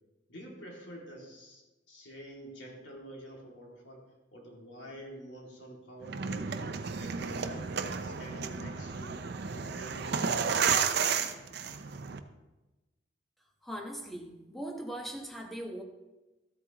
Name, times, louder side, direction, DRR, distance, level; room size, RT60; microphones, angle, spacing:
voice 1, 0.3-1.6 1.9-4.0 4.3-7.7 8.0-10.5, right 1 dB, 85° left, 2.4 m, -48 dB
sound 1, 6.0-12.2, right 6 dB, 60° right, 0.6 m, -32 dB
voice 2, 13.6-15.8, right 1 dB, ahead, 1.1 m, -40 dB
13.5 x 8.4 x 3.0 m
head